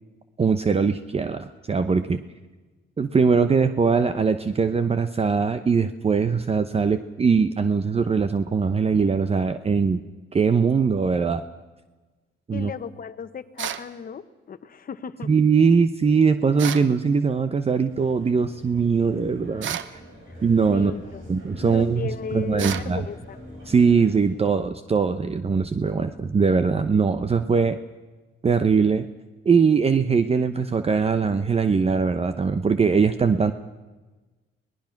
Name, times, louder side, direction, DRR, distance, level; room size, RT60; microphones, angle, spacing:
voice 1, 0.4-2.2 3.0-10.0 10.3-11.4 12.5-12.7 15.3-20.0 20.4-20.9 21.3-23.0 23.7-27.8 28.4-29.0 29.4-33.5, right 5 dB, 30° right, 10 dB, 0.9 m, -21 dB
voice 2, 12.5-15.3 20.7-21.2 21.6-23.4, left 6 dB, 45° left, 12 dB, 1.2 m, -35 dB
sound 1, 13.6-13.9 16.6-16.9 19.6-20.0 22.6-22.9, right 10 dB, 75° right, 1.0 m, -30 dB
sound 2, 17.7-24.3, right 1 dB, 90° right, 7.8 m, -52 dB
sound 3, 17.8-23.7, left 1 dB, 10° left, 5.3 m, -44 dB
25.5 x 19.0 x 5.9 m, 1.2 s
cardioid pair, 90°, 20 cm